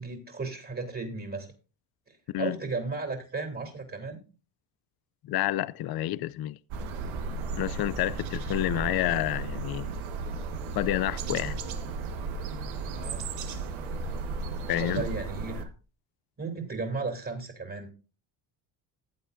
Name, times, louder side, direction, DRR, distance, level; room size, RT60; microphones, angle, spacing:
voice 1, 0.0-1.5 2.1-4.2 12.8-13.3 14.8-15.7 16.4-17.9, right 3 dB, 25° right, 2.9 m, -35 dB
voice 2, 5.3-6.6 7.6-9.9 10.7-11.6 14.7-15.0, left 14 dB, 50° left, 0.5 m, -29 dB
sound 1, 6.7-15.6, right 4 dB, 75° right, 1.5 m, -34 dB
15.0 x 8.1 x 2.6 m
cardioid pair, 85°, 48 cm